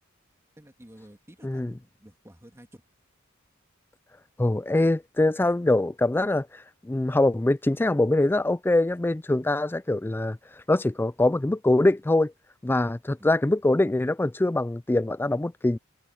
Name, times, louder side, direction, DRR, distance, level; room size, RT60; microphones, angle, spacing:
voice 1, 0.6-2.8 13.2-13.4, equal, 15° right, 2.5 m, -51 dB
voice 2, 4.4-10.4 10.7-12.3 12.6-15.8, left 2 dB, 10° left, 0.3 m, -23 dB
head